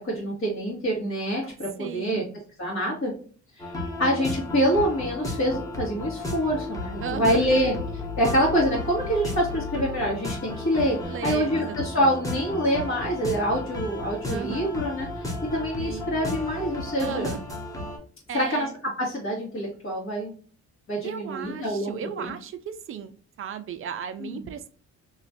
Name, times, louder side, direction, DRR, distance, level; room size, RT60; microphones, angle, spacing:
voice 1, 0.0-2.2 2.6-3.1 3.6-3.7 4.0-7.7 8.2-15.1 15.5-17.3 18.3-18.7 19.0-20.3 20.9-22.3 24.2-24.4, equal, 45° left, -8 dB, 1.7 m, -26 dB
voice 2, 1.8-2.3 7.0-7.5 11.1-12.1 14.3-14.7 15.8-16.1 17.0-17.4 18.3-18.7 21.0-23.1 23.4-24.7, right 7 dB, 45° right, 9 dB, 0.5 m, -35 dB
sound 1, 3.6-18.0, left 1 dB, 10° left, 1.1 m, -34 dB
sound 2, 6.7-11.2, left 14 dB, 65° left, 0.7 m, -39 dB
3.0 x 2.4 x 4.2 m, 0.42 s
cardioid pair, 90°, 30 cm